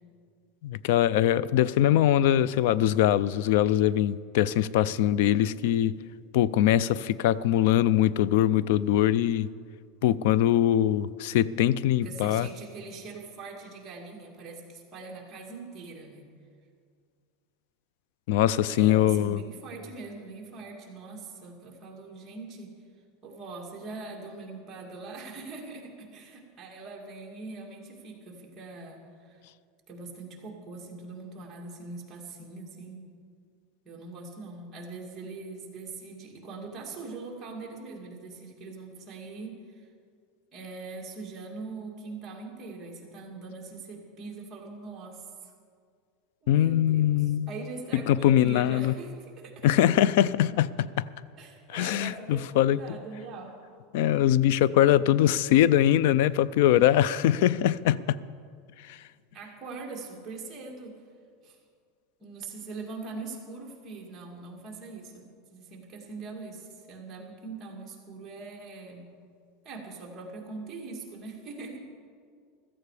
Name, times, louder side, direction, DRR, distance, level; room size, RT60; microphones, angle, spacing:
voice 1, 0.6-5.9 6.3-9.5 10.0-12.5 18.3-19.4 46.5-47.5 47.9-48.9 49.6-51.1 51.7-53.0 53.9-58.2 58.9-59.0, left 12 dB, 65° left, 19 dB, 0.4 m, -22 dB
voice 2, 11.9-16.3 18.7-22.7 23.2-29.4 29.9-33.1 33.8-39.8 40.5-45.5 46.4-47.1 47.5-49.7 51.4-53.6 59.3-61.0 61.4-61.6 62.2-65.3 65.5-69.1 69.6-71.8, right 3 dB, 20° right, -1 dB, 2.2 m, -42 dB
15.5 x 14.0 x 4.9 m, 2.1 s
supercardioid pair, 165°, 0 cm